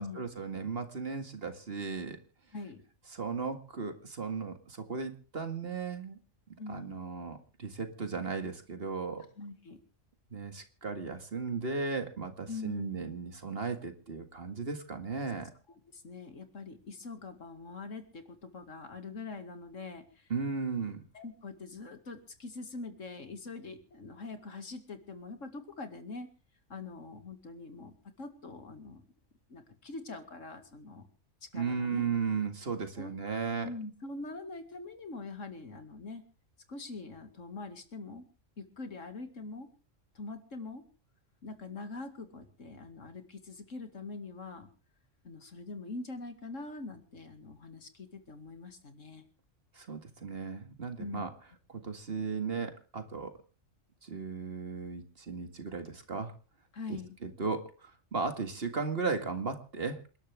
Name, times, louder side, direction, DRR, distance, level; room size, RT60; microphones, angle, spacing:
voice 1, 0.0-2.2 3.1-6.2 6.7-9.3 10.3-15.5 20.3-21.0 31.5-33.7 49.7-51.3 51.7-53.4 54.0-56.3 56.9-60.0, right 5 dB, 50° right, 7 dB, 2.2 m, -36 dB
voice 2, 6.6-6.9 9.4-9.8 12.5-13.1 15.9-20.3 21.1-26.3 26.7-29.0 29.5-31.0 31.5-32.1 33.0-33.1 33.6-36.2 36.7-38.3 38.6-39.7 40.1-40.8 41.4-44.7 45.2-49.3 51.0-51.2 56.7-57.2, left 3 dB, 80° left, 7 dB, 2.6 m, -43 dB
28.5 x 12.0 x 3.5 m, 0.36 s
omnidirectional pair, 1.3 m